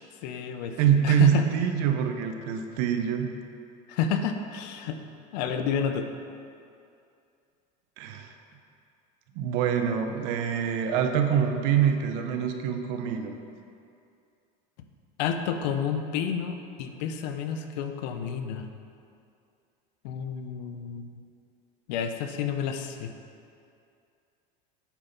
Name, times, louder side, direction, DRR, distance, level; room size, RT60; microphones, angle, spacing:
voice 1, 0.2-0.8 1.0-1.4 3.9-5.0 5.3-6.1 15.2-18.7 20.0-21.1 21.9-23.1, left 7 dB, 85° left, 7 dB, 0.7 m, -30 dB
voice 2, 0.8-3.3 8.0-8.3 9.3-13.4, right 8 dB, 70° right, 6 dB, 0.8 m, -25 dB
8.3 x 5.9 x 4.0 m, 2.5 s
cardioid pair, 140°, 21 cm